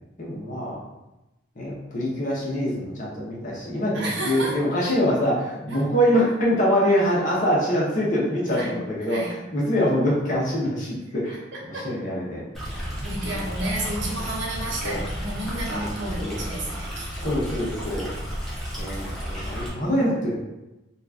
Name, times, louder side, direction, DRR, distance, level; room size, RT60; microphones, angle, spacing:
voice 1, 0.2-0.8 1.6-11.4 11.7-12.4 13.2-13.4 14.8-15.0 15.7-15.9 16.2-16.4 17.2-18.1 18.8-20.4, equal, 45° left, -5 dB, 0.9 m, -24 dB
voice 2, 3.9-4.6 5.7-5.8 8.5-9.4 11.0-11.8 12.6-17.4 19.4-19.6, right 1 dB, 70° right, -3 dB, 0.8 m, -32 dB
Stream, 12.5-19.7, equal, ahead, 0.8 m, -32 dB
2.9 x 2.4 x 3.5 m, 1.0 s
head